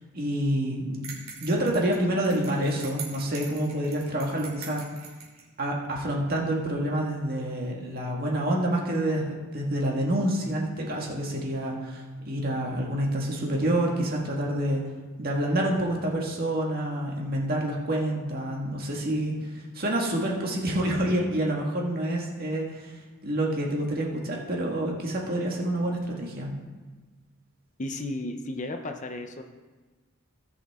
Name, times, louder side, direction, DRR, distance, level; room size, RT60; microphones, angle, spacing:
voice 1, 0.1-1.1 1.4-4.8 5.6-14.9 15.2-22.9 23.2-26.6, right 1 dB, 45° right, -2 dB, 1.8 m, -28 dB
sound 1, 1.0-5.5, right 6 dB, 70° right, 2.7 m, -43 dB
voice 2, 27.8-29.4, left 1 dB, 35° left, 6 dB, 0.6 m, -34 dB
17.5 x 6.0 x 3.6 m, 1.3 s
head